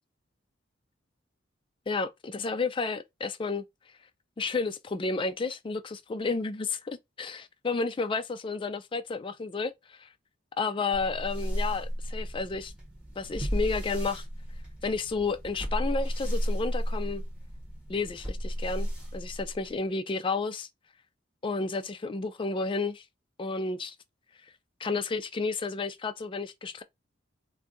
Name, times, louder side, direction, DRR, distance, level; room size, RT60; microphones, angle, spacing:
voice 1, 1.9-3.6 4.4-10.1 10.6-12.7 13.2-14.2 14.8-17.2 17.9-20.7 21.4-23.0 23.4-24.0 24.8-26.8, left 4 dB, 25° left, 0.4 m, -31 dB
sound 1, 10.9-19.8, equal, 5° right, 1.0 m, -34 dB
2.6 x 2.3 x 3.8 m
head